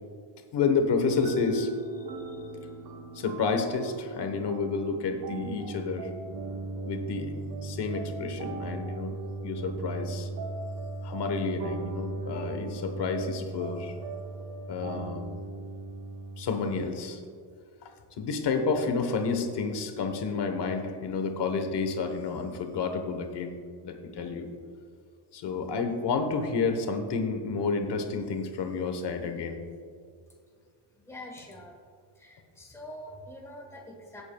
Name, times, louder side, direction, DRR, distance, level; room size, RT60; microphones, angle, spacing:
voice 1, 0.5-1.7 3.1-6.1 6.8-7.3 7.6-9.2 9.4-10.3 11.0-14.0 14.7-15.3 16.4-17.2 18.2-23.6 23.8-24.5 25.3-29.6, left 4 dB, 55° left, 6 dB, 1.2 m, -30 dB
sound 1, 1.1-16.4, right 3 dB, 50° right, 1.1 m, -38 dB
voice 2, 30.9-31.8 32.1-34.2, left 1 dB, 5° left, -1 dB, 1.3 m, -45 dB
16.5 x 8.4 x 2.3 m, 2.2 s
wide cardioid pair, 175°, 49 cm